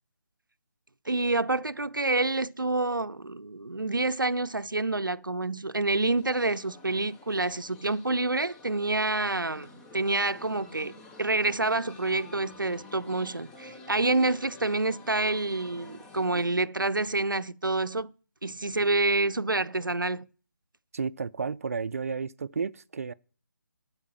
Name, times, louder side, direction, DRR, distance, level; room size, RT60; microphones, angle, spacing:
voice 1, 1.1-18.1 18.4-20.2, right 2 dB, 90° right, 0.6 m, -28 dB
sound 1, 6.2-16.5, left 3 dB, 5° left, 0.6 m, -50 dB
voice 2, 20.9-23.1, right 5 dB, 45° right, 0.5 m, -32 dB
12.0 x 4.8 x 7.1 m
figure-of-eight pair, 150°, 11 cm